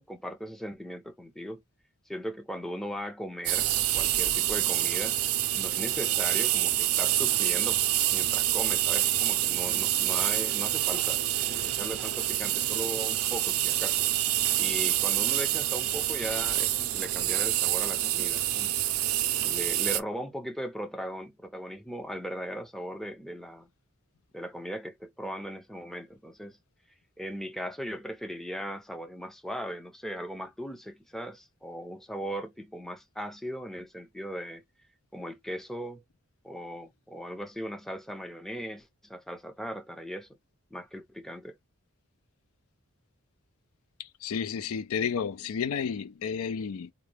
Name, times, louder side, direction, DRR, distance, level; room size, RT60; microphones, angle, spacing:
voice 1, 0.0-1.6 2.1-5.2 5.5-7.8 8.1-14.0 14.6-18.8 19.4-23.7 24.3-26.6 27.2-34.6 35.1-36.0 36.4-40.3 40.7-41.6, equal, ahead, 0.4 m, -38 dB
sound 1, 3.4-20.0, right 13 dB, 85° right, 0.5 m, -27 dB
voice 2, 44.0-46.9, left 6 dB, 85° left, 0.4 m, -32 dB
3.9 x 2.2 x 3.1 m
head